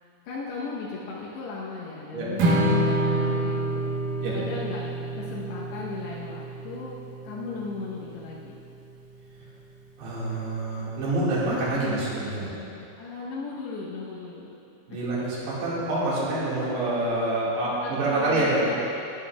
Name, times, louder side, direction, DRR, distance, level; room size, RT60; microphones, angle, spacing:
voice 1, 0.2-3.9 4.3-4.8 5.1-7.0 7.2-8.6 13.0-14.5 14.9-15.0 17.6-18.8, left 4 dB, 85° left, -7 dB, 3.2 m, -36 dB
Strum, 2.4-8.7, right 1 dB, 65° right, 2.6 m, -28 dB
voice 2, 10.0-12.5 14.9-18.7, right 2 dB, 85° right, -8 dB, 4.3 m, -27 dB
19.5 x 9.9 x 2.4 m, 2.6 s
omnidirectional pair, 4.7 m